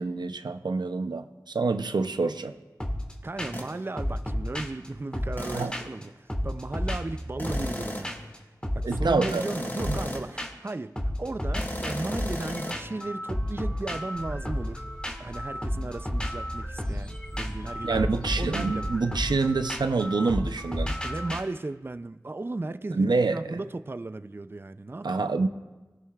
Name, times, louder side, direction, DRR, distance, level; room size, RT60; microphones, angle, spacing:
voice 1, 0.0-2.5 5.5-5.8 8.8-9.4 9.9-10.0 17.8-21.0 22.9-23.6 25.0-25.5, right 3 dB, 90° right, 0.5 m, -27 dB
sound 1, 2.8-3.1 3.4-3.7 4.0-6.0 6.3-7.8 8.0-8.4 8.6-10.7 11.0-21.4, equal, 15° left, 1.5 m, -32 dB
voice 2, 3.2-8.1 8.7-14.9 15.2-18.1 18.4-18.9 21.0-25.3, right 2 dB, 30° right, 0.4 m, -35 dB
sound 2, 3.5-3.7 5.4-5.8 7.4-8.2 9.3-10.4 11.6-12.8, left 1 dB, 30° left, 1.7 m, -35 dB
sound 3, 14.1-20.1, equal, 45° right, 2.4 m, -40 dB
18.5 x 11.0 x 2.4 m
wide cardioid pair, 40°, 7 cm